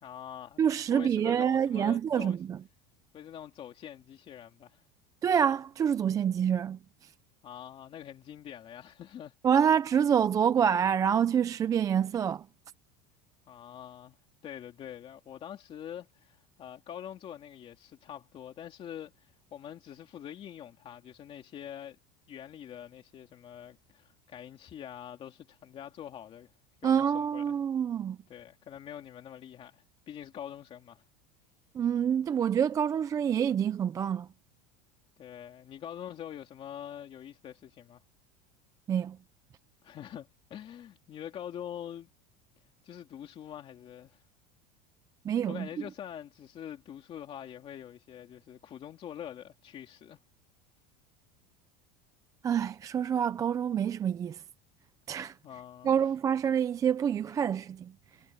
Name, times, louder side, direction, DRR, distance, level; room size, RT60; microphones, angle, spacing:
voice 1, 0.0-0.6 0.9-2.4 3.1-4.8 7.4-9.3 13.5-14.2 14.4-22.0 22.3-26.5 26.8-27.6 28.3-31.0 35.2-38.0 39.8-42.1 42.8-44.2 45.5-50.2 55.4-56.0, left 10 dB, 30° left, 2.7 m, -45 dB
voice 2, 0.6-2.6 5.2-7.1 9.4-12.4 26.8-28.2 31.7-34.3 38.9-39.2 45.2-45.7 52.4-54.4 55.1-55.4 55.8-57.9, right 8 dB, 15° right, 0.4 m, -27 dB
cardioid pair, 165°, 20 cm